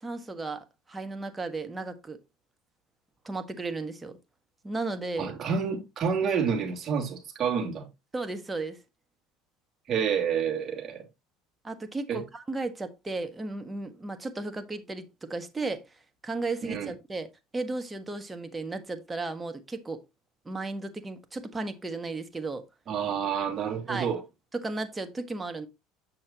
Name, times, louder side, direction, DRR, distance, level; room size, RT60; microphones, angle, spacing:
voice 1, 0.0-2.2 3.2-4.2 4.6-5.3 8.1-8.8 11.6-15.8 16.2-20.0 20.4-22.6 23.9-24.1 24.6-25.7, right 3 dB, 20° right, 1.3 m, -34 dB
voice 2, 5.2-7.8 9.9-11.0 12.1-12.2 16.7-16.9 22.9-24.2, right 7 dB, 40° right, 2.7 m, -28 dB
7.7 x 6.3 x 2.8 m
hypercardioid pair, 75°, 0 cm